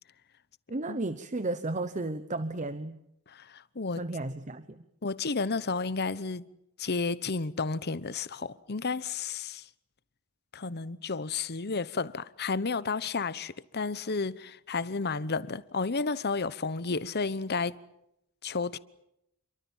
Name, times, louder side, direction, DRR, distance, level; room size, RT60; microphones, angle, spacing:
voice 1, 0.7-3.0 4.0-4.8, right 2 dB, 35° right, 1.0 m, -33 dB
voice 2, 3.3-4.0 5.0-6.4 6.8-9.7 10.5-17.8 18.4-18.8, left 4 dB, 50° left, 1.0 m, -32 dB
28.5 x 23.5 x 7.3 m
head